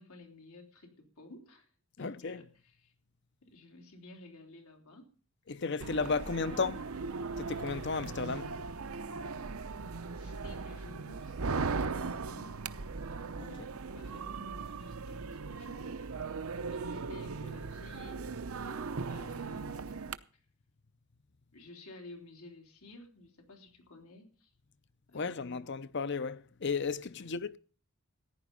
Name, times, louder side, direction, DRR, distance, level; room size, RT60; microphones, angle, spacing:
voice 1, 0.0-1.7 2.0-2.9 3.4-5.1 5.5-6.7 8.2-8.7 10.0-12.5 13.5-13.6 13.9-16.0 16.2-18.4 19.1-20.0 20.3-20.4 21.5-24.5 25.1-25.6 27.2-27.3, left 2 dB, 85° left, 3.4 m, -53 dB
voice 2, 2.0-2.4 5.5-6.8 7.4-8.4 13.4-13.5 25.1-27.6, left 4 dB, 55° left, 0.7 m, -34 dB
sound 1, 5.8-20.2, right 4 dB, 80° right, 0.7 m, -38 dB
14.5 x 10.0 x 5.3 m
head